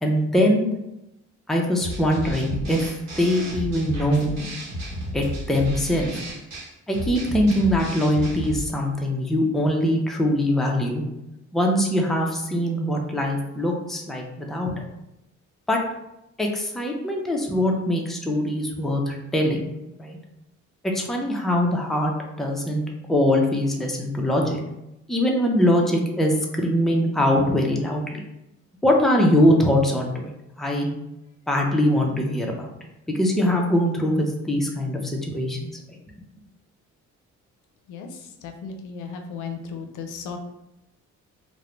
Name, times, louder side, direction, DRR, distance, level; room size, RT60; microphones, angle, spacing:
voice 1, 0.0-0.7 1.5-2.9 3.2-4.3 5.1-6.1 6.9-11.0 11.5-14.7 15.7-15.8 16.4-19.6 20.0-20.2 20.9-22.1 22.4-22.8 23.1-24.6 25.1-28.2 28.8-30.3 30.6-30.9 31.5-32.7 33.1-35.7, left 1 dB, ahead, 0 dB, 0.4 m, -22 dB
sound 1, 1.8-8.7, equal, 60° right, 0.9 m, -33 dB
voice 2, 38.4-40.4, left 5 dB, 85° left, 5 dB, 0.5 m, -35 dB
2.4 x 2.1 x 3.0 m, 0.89 s
cardioid pair, 90°, 30 cm